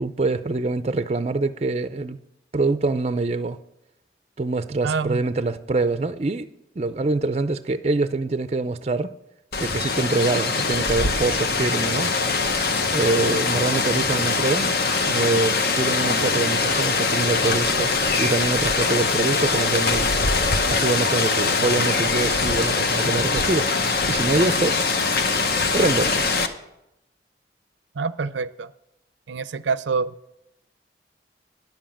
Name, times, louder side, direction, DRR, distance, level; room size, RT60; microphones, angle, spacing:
voice 1, 0.0-2.2 2.5-3.6 4.4-6.5 6.8-9.1 9.6-12.1 12.9-20.1 20.7-23.7 24.1-24.8 25.7-26.2, right 3 dB, 35° right, 0.4 m, -24 dB
voice 2, 4.8-5.2 28.0-28.7 29.3-30.1, right 4 dB, 90° right, 0.5 m, -26 dB
Rain, 9.5-26.5, left 4 dB, 55° left, 0.9 m, -22 dB
10.5 x 7.7 x 7.2 m
head